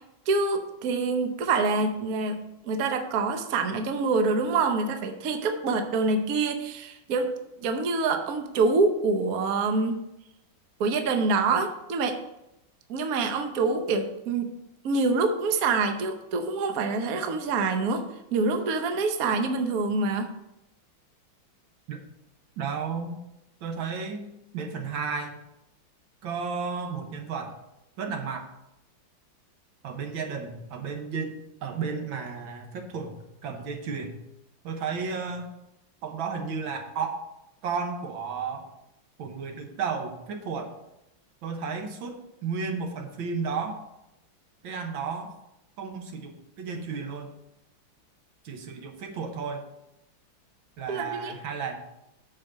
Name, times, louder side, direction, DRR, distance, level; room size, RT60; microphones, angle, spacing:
voice 1, 0.3-7.3 7.6-10.0 10.8-12.2 12.9-14.5 14.8-18.0 18.3-20.3 50.9-51.3, right 3 dB, 60° right, 6 dB, 1.1 m, -26 dB
voice 2, 22.6-23.2 23.6-24.3 24.5-25.4 26.2-27.6 28.0-28.5 29.8-33.1 33.4-34.2 34.6-35.5 36.0-37.3 37.6-38.7 39.2-40.8 41.4-43.8 44.6-45.4 45.8-47.3 48.5-49.7 50.8-51.8, right 5 dB, 80° right, 5 dB, 1.8 m, -33 dB
7.0 x 5.0 x 6.2 m, 0.86 s
omnidirectional pair, 2.1 m